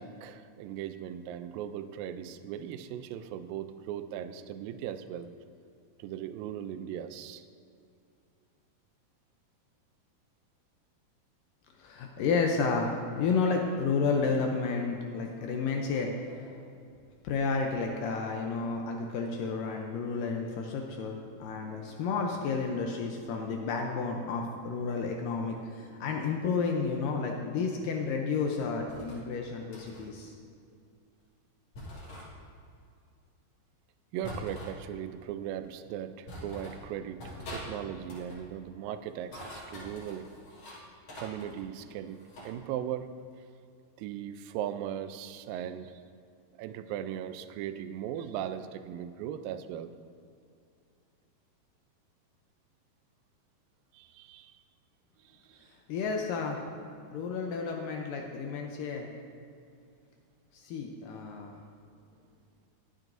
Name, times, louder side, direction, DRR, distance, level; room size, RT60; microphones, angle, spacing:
voice 1, 0.0-5.3 6.0-7.5 34.1-40.3 41.2-43.1 44.0-46.0 46.6-49.9 53.9-54.6 55.2-55.7, right 10 dB, 85° right, 10 dB, 2.0 m, -38 dB
voice 2, 11.8-16.7 17.2-30.3 55.9-56.6 57.1-59.1 60.5-61.5, left 4 dB, 80° left, 2 dB, 2.0 m, -31 dB
sound 1, 28.9-29.2 29.7-30.1 31.7-32.3 34.2-34.8 35.6-35.7 36.3-36.8 37.2-37.7 38.0-38.4 39.1-40.8 41.1-42.5, equal, 50° left, 3.4 m, -44 dB
21.5 x 7.6 x 2.6 m, 2.4 s
omnidirectional pair, 4.6 m